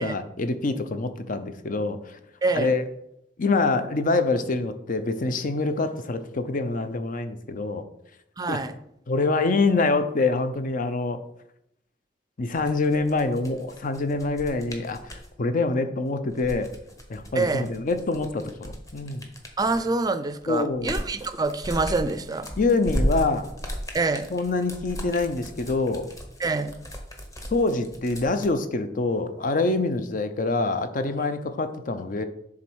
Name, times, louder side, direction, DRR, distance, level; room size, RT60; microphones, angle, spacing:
voice 1, 0.0-2.2 2.5-2.8 3.4-7.8 8.5-8.6 9.1-11.2 12.4-16.7 17.1-19.3 20.5-21.0 22.6-23.5 24.3-26.1 27.5-32.2, left 3 dB, 50° left, 10 dB, 0.6 m, -25 dB
voice 2, 2.4-2.7 8.4-8.7 17.3-17.7 19.6-22.5 23.9-24.3 26.4-26.7, right 3 dB, 20° right, 11 dB, 0.5 m, -26 dB
sound 1, 12.5-15.3 16.2-20.0 20.4-28.5, equal, 20° left, 1.1 m, -35 dB
7.3 x 3.8 x 6.2 m, 0.79 s
head